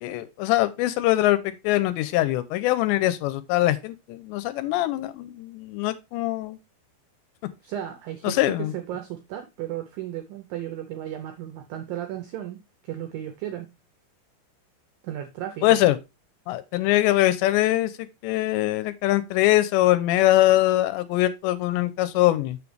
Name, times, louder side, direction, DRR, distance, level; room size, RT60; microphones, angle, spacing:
voice 1, 0.0-6.6 8.2-8.7 15.6-16.0 16.5-22.6, left 15 dB, 90° left, 2.9 m, -22 dB
voice 2, 7.6-12.6 12.8-13.7 15.0-15.7, right 11 dB, 85° right, 2.0 m, -34 dB
7.1 x 6.5 x 3.3 m
omnidirectional pair, 5.1 m